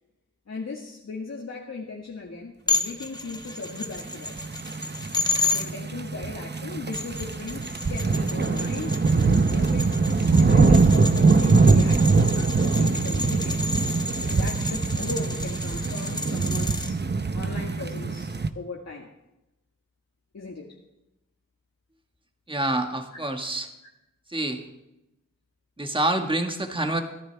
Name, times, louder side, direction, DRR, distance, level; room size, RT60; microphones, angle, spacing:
voice 1, 0.5-4.3 5.4-9.9 10.4-17.0 17.3-19.1 20.3-20.7 23.1-23.2, left 3 dB, 55° left, -2 dB, 1.8 m, -38 dB
sound 1, 2.7-5.6 6.7-16.9, left 3 dB, 15° left, 1.2 m, -32 dB
sound 2, 4.2-18.5, right 4 dB, 30° right, 0.9 m, -22 dB
voice 2, 22.5-23.7 24.3-24.6 25.8-27.0, right 1 dB, 15° right, 4 dB, 1.7 m, -27 dB
24.0 x 10.5 x 3.5 m, 0.93 s
cardioid pair, 60°, 32 cm